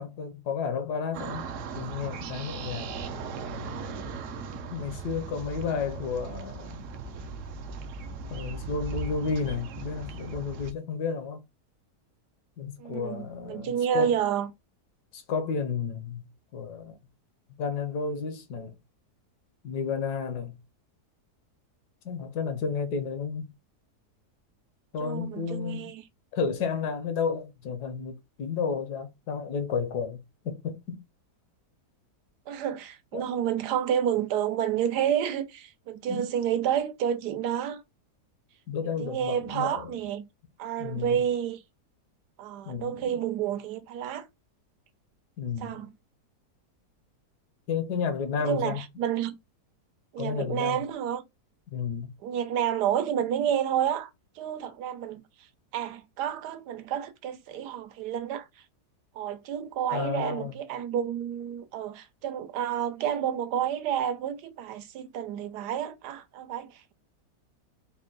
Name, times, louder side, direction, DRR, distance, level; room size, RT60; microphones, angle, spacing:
voice 1, 0.0-1.5 1.7-2.9 4.7-6.8 8.3-11.4 12.6-14.1 15.1-16.2 16.5-17.0 17.6-18.7 19.6-20.5 22.0-23.5 24.9-26.0 26.3-30.2 30.4-31.0 33.1-33.3 36.1-36.3 38.7-39.9 40.8-41.2 42.7-43.2 45.4-45.8 47.7-48.8 50.2-50.8 51.7-52.1 59.9-60.5, left 5 dB, 80° left, 1.4 m, -32 dB
sound 1, 1.1-10.7, right 4 dB, 65° right, 0.8 m, -38 dB
voice 2, 12.8-14.5 25.0-26.0 32.5-37.8 39.0-40.2 40.6-41.6 42.4-44.3 45.6-45.9 48.5-49.3 50.1-51.2 52.2-54.1 54.4-55.2 55.7-58.5 59.2-66.9, right 9 dB, 85° right, 1.2 m, -30 dB
4.2 x 2.2 x 3.8 m
omnidirectional pair, 1.7 m